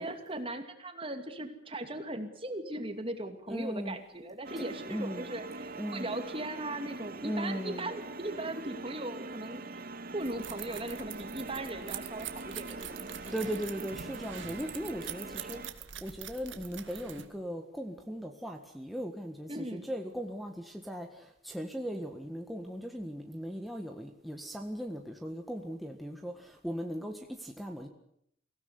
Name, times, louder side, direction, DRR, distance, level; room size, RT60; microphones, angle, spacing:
voice 1, 0.0-9.8 10.1-13.5 13.8-13.9 19.5-19.9, right 1 dB, 30° right, 7 dB, 2.5 m, -39 dB
voice 2, 3.5-4.0 4.9-5.2 5.8-6.1 7.2-7.9 13.1-15.6 16.0-27.9, equal, ahead, 2 dB, 1.7 m, -38 dB
sound 1, 4.4-15.7, right 3 dB, 50° right, 1.6 m, -43 dB
sound 2, 10.2-17.3, right 9 dB, 85° right, 2.0 m, -44 dB
24.0 x 17.0 x 9.6 m, 0.72 s
head